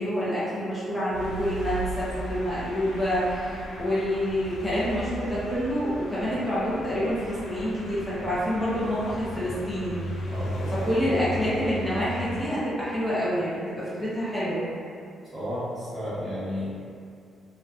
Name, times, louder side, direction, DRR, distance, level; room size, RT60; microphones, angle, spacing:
voice 1, 0.0-10.2 10.7-14.6, equal, 5° left, -11 dB, 0.5 m, -27 dB
sound 1, 1.1-12.5, equal, 85° left, 0.4 m, -36 dB
voice 2, 10.3-10.9 15.3-16.7, equal, 40° right, -12 dB, 0.9 m, -33 dB
2.5 x 2.2 x 2.3 m, 2.4 s
cardioid pair, 175°, 0 cm